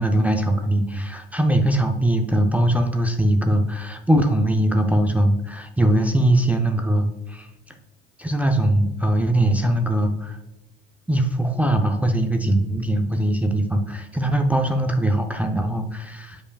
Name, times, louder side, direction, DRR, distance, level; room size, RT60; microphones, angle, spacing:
voice 1, 0.0-7.5 8.2-10.4 11.1-16.4, right 1 dB, 5° right, 4 dB, 0.5 m, -21 dB
8.4 x 4.9 x 2.3 m, 0.98 s
hypercardioid pair, 75°, 30 cm